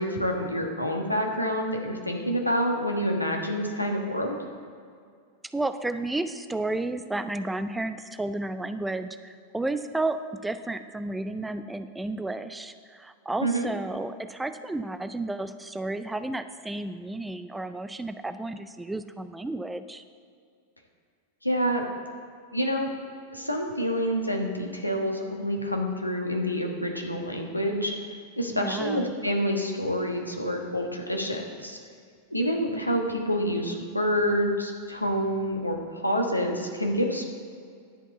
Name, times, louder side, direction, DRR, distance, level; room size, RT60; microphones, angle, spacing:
voice 1, 0.0-4.4 13.4-13.7 21.4-21.8 22.5-22.9 23.3-27.9 28.4-31.8 32.3-37.2, equal, 85° left, 2 dB, 1.2 m, -27 dB
voice 2, 5.5-20.0 28.5-29.1, right 2 dB, 5° right, 10 dB, 0.4 m, -32 dB
11.0 x 5.3 x 7.1 m, 2.2 s
figure-of-eight pair, 90°, 0 cm